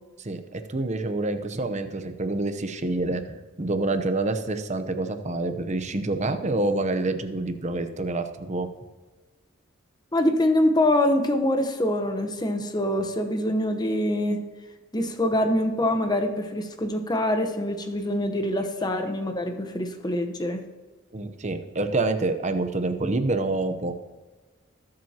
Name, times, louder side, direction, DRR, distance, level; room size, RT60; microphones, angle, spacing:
voice 1, 0.2-8.7 21.1-24.0, right 2 dB, 35° right, 8 dB, 0.8 m, -27 dB
voice 2, 10.1-14.4 14.9-20.6, left 1 dB, 20° left, 6 dB, 1.0 m, -24 dB
20.5 x 7.7 x 2.9 m, 1.3 s
head